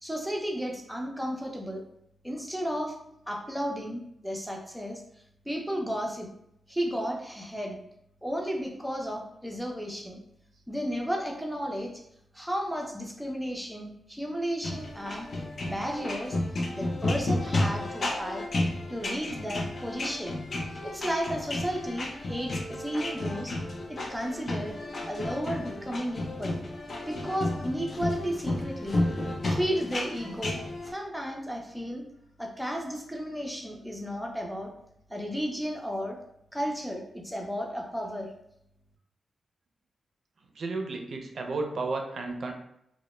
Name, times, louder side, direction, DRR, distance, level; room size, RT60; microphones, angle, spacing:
voice 1, 0.0-1.8 2.2-3.0 3.3-5.0 5.5-6.3 6.7-7.8 8.2-10.2 10.7-12.0 12.3-16.4 16.7-18.5 18.9-20.4 20.8-23.6 23.9-24.7 25.1-26.6 27.0-29.1 29.5-32.0 32.4-34.7 35.1-36.2 36.5-38.3, equal, 5° right, 0 dB, 0.5 m, -33 dB
sound 1, 14.6-30.9, left 1 dB, 55° left, 0.4 m, -32 dB
voice 2, 40.6-42.5, right 3 dB, 65° right, 3 dB, 0.4 m, -32 dB
2.0 x 2.0 x 3.0 m, 0.77 s
cardioid pair, 80°, 0 cm